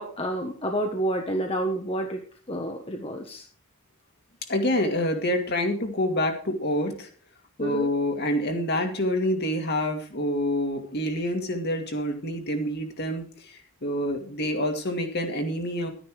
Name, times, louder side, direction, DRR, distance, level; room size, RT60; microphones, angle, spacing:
voice 1, 0.0-2.2 2.5-3.4 7.6-7.9, right 1 dB, 25° left, 2 dB, 1.3 m, -29 dB
voice 2, 4.5-7.1 7.6-13.5 13.8-15.9, left 1 dB, 50° left, 4 dB, 2.3 m, -27 dB
12.0 x 10.0 x 4.8 m, 0.41 s
head